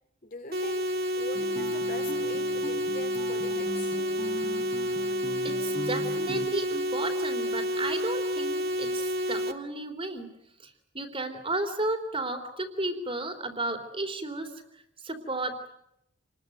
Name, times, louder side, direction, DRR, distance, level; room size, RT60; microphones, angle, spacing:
voice 1, 0.2-0.8 1.2-4.0, left 2 dB, 40° left, 6 dB, 4.4 m, -42 dB
sound 1, 0.5-9.5, equal, 45° right, 2.2 m, -30 dB
Guitar, 1.3-6.5, equal, 20° left, 3.8 m, -39 dB
voice 2, 5.4-10.3 10.6-14.5 15.0-15.5, right 2 dB, 25° right, 5 dB, 3.4 m, -33 dB
29.0 x 21.0 x 9.2 m, 0.78 s
head